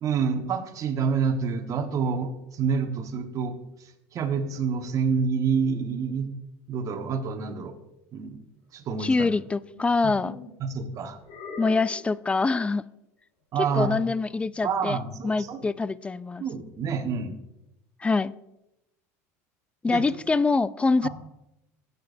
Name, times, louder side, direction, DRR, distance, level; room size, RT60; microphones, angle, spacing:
voice 1, 0.0-3.6 4.1-6.3 6.7-7.7 8.1-8.4 8.7-9.3 10.0-10.1 10.6-11.2 13.5-14.0 14.6-15.7 16.4-17.4 19.9-20.0 21.0-21.1, right 6 dB, 45° right, 1.2 m, -28 dB
voice 2, 9.0-10.4 11.6-12.9 13.7-15.0 15.2-16.4 18.0-18.3 19.8-21.1, left 3 dB, 15° left, 0.3 m, -24 dB
sound 1, 9.7-10.5 11.2-12.1 13.6-14.1, left 3 dB, 55° left, 2.6 m, -40 dB
16.5 x 6.8 x 2.6 m
hypercardioid pair, 85°, 8 cm